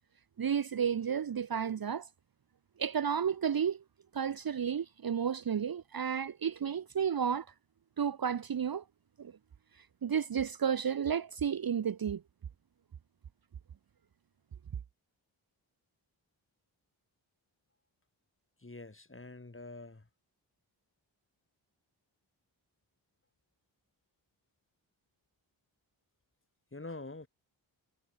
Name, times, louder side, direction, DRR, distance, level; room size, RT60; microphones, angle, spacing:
voice 1, 0.4-2.1 2.8-3.8 4.1-7.5 8.0-8.8 9.2-9.3 10.0-12.2, right 7 dB, 45° right, 1.0 m, -32 dB
voice 2, 18.6-20.1 26.7-27.3, left 2 dB, 25° left, 6.3 m, -46 dB
cardioid pair, 50°, 48 cm